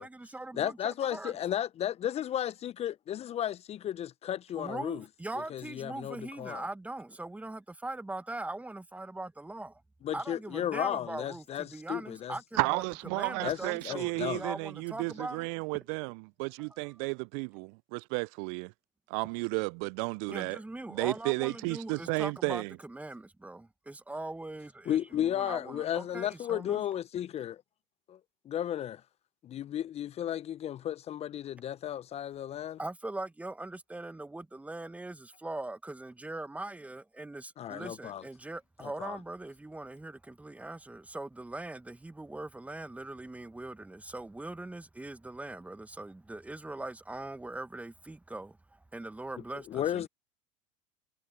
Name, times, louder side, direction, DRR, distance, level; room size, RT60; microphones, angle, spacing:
voice 1, 0.0-1.3 4.6-9.8 10.1-12.8 13.1-15.5 16.6-16.9 20.3-26.8 32.8-50.1, right 2 dB, 10° right, 1.6 m, -41 dB
voice 2, 0.6-5.0 5.5-6.6 10.0-12.3 13.4-13.6 13.8-14.4 24.9-27.6 28.1-28.2 28.4-29.0 29.4-32.8 37.6-38.2 38.8-39.2 49.7-50.1, left 11 dB, 35° left, 0.9 m, -34 dB
voice 3, 12.6-18.7 19.1-20.6 20.9-22.7, right 35 dB, 55° right, 0.4 m, -33 dB
hypercardioid pair, 80°, 18 cm